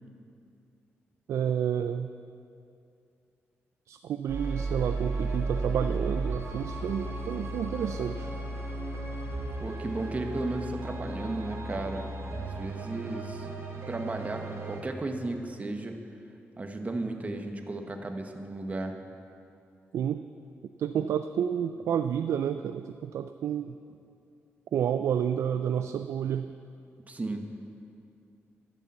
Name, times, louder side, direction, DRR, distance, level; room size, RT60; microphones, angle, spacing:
voice 1, 1.3-2.1 3.9-8.3 19.9-20.2 20.8-23.7 24.7-26.5, right 8 dB, 80° right, 10 dB, 0.3 m, -30 dB
airborne dramatic, 4.3-14.8, right 2 dB, 65° right, 2.1 m, -35 dB
voice 2, 9.6-12.1 12.4-13.5 13.9-16.0 16.6-19.0 27.1-27.5, right 2 dB, 30° right, 4 dB, 1.1 m, -34 dB
13.0 x 6.9 x 7.4 m, 2.6 s
cardioid pair, 90°, 5 cm